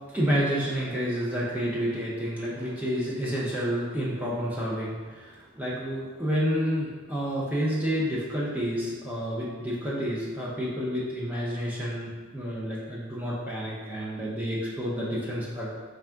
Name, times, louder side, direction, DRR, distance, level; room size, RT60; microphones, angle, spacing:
voice 1, 0.1-15.8, equal, 5° right, -7 dB, 0.5 m, -29 dB
3.4 x 2.5 x 3.4 m, 1.5 s
head